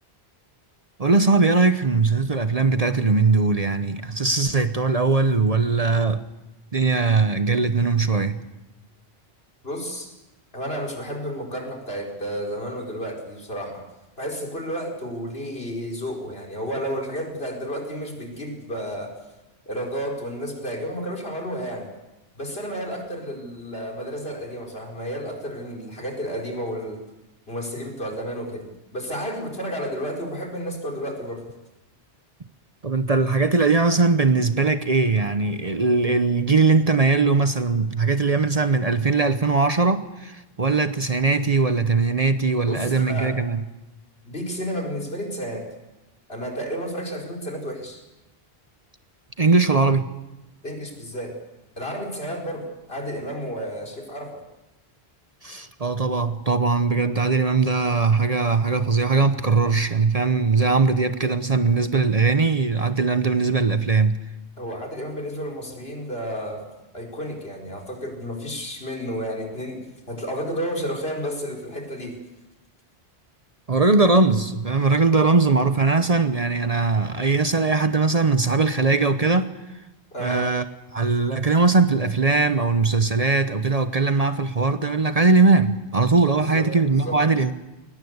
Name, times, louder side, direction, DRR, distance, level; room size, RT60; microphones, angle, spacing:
voice 1, 1.0-6.2 6.7-8.5 32.8-43.6 49.4-50.1 55.4-64.2 73.7-79.5 80.2-80.6 80.9-87.5, right 4 dB, 40° right, 0.9 m, -20 dB
voice 2, 9.6-10.1 10.5-13.8 14.2-19.1 19.7-21.9 22.3-27.1 27.5-31.5 42.7-43.3 44.2-45.7 46.3-48.0 50.6-51.4 51.8-54.4 64.6-66.6 66.9-72.2 80.1-80.5 86.4-87.2, equal, 70° left, 4.8 m, -31 dB
22.0 x 20.0 x 8.1 m
omnidirectional pair, 1.1 m